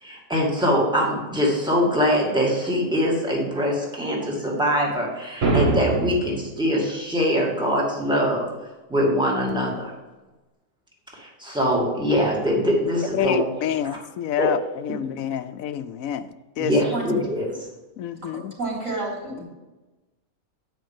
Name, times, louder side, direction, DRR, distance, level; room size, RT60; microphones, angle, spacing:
voice 1, 0.0-8.4 8.9-9.9 11.1-13.4 14.4-14.5 16.6-17.6, equal, 5° right, -3 dB, 2.1 m, -23 dB
sound 1, 5.4-6.4, right 3 dB, 50° right, 1.5 m, -22 dB
voice 2, 13.1-16.7 18.0-18.5, left 10 dB, 80° left, 12 dB, 1.0 m, -27 dB
voice 3, 18.6-19.4, right 2 dB, 70° right, -4 dB, 3.9 m, -29 dB
9.0 x 5.2 x 7.2 m, 1.1 s
omnidirectional pair, 1.4 m